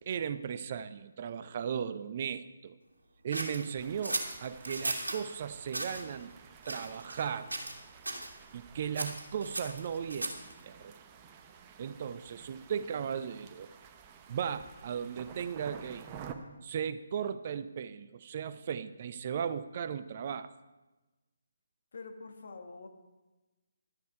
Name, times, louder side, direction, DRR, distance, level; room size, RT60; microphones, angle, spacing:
voice 1, 0.0-2.8 3.2-6.3 6.7-7.5 8.5-10.9 11.8-13.7 14.3-16.1 16.6-20.5, right 7 dB, 40° right, 13 dB, 0.5 m, -36 dB
sound 1, 3.3-5.2 5.7-6.0 6.6-7.3 7.5-7.8 8.0-8.3 8.9-10.5, right 2 dB, 75° right, 2.0 m, -36 dB
sound 2, 3.8-16.3, right 7 dB, 20° right, 0.8 m, -52 dB
voice 2, 21.9-22.9, left 3 dB, 50° left, 5 dB, 1.5 m, -46 dB
11.5 x 10.5 x 4.7 m, 1.1 s
figure-of-eight pair, 145°, 0 cm